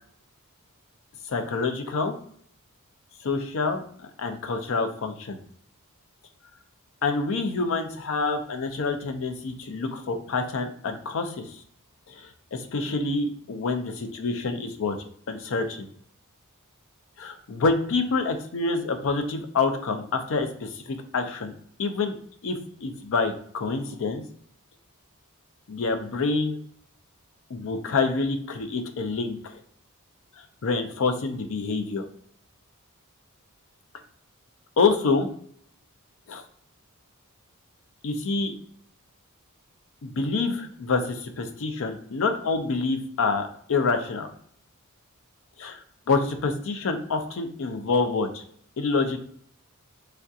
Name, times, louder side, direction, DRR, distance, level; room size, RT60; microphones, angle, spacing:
voice 1, 1.3-2.2 3.2-5.4 7.0-11.4 12.1-15.0 15.3-15.9 17.2-21.5 21.8-22.2 22.4-24.2 25.7-26.6 27.5-29.5 30.4-32.0 34.8-35.3 36.3-36.4 38.0-38.5 40.0-44.3 45.6-48.4 48.8-49.2, left 4 dB, 65° left, 7 dB, 0.5 m, -27 dB
3.4 x 2.4 x 2.6 m, 0.63 s
head